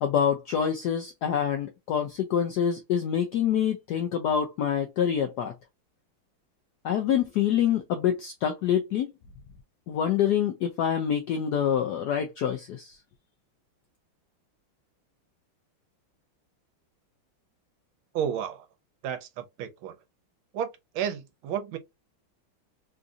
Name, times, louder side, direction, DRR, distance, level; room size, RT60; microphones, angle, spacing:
voice 1, 0.0-5.5 6.8-9.1 9.9-13.0, left 9 dB, 80° left, 0.9 m, -26 dB
voice 2, 18.1-18.7 19.0-20.0 20.5-21.8, right 9 dB, 80° right, 1.5 m, -32 dB
3.8 x 2.6 x 2.4 m
omnidirectional pair, 2.3 m